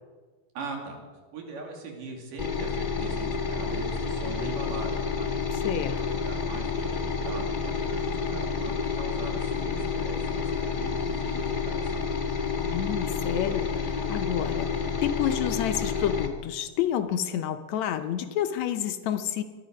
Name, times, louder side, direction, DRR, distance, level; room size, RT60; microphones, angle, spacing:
voice 1, 0.5-1.0 1.3-5.3 6.3-12.0, right 3 dB, 75° right, 1 dB, 4.3 m, -40 dB
sound 1, 2.4-16.3, left 5 dB, 30° left, 0.8 m, -29 dB
voice 2, 5.6-6.2 12.6-19.4, left 10 dB, 70° left, 8 dB, 1.8 m, -29 dB
23.0 x 12.0 x 5.3 m, 1.4 s
omnidirectional pair, 3.8 m